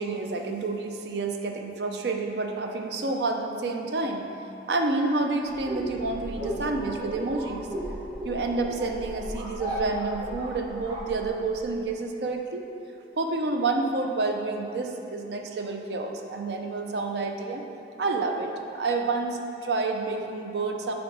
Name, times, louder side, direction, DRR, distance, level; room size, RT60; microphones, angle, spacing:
voice 1, 0.0-4.3 4.7-7.7 8.2-12.6 13.2-17.6 18.0-20.9, right 3 dB, 65° right, 3 dB, 0.5 m, -29 dB
sound 1, 5.5-11.7, right 1 dB, 20° right, 1.0 m, -35 dB
7.0 x 3.7 x 4.9 m, 2.8 s
head